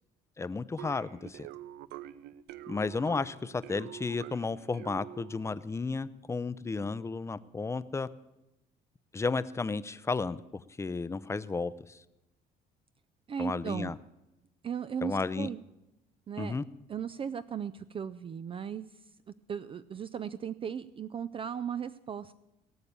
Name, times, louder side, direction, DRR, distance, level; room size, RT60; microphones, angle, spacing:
voice 1, 0.4-1.5 2.7-8.1 9.1-12.0 13.4-13.9 15.0-15.5 16.4-16.6, left 4 dB, 15° left, 16 dB, 0.5 m, -33 dB
sound 1, 0.8-5.6, right 13 dB, 85° right, 0.6 m, -46 dB
voice 2, 13.3-13.9 14.6-15.6 16.3-16.6 16.9-18.8 19.5-22.3, right 7 dB, 30° right, 12 dB, 0.4 m, -36 dB
18.0 x 6.7 x 8.6 m, 0.94 s
cardioid pair, 110°, 17 cm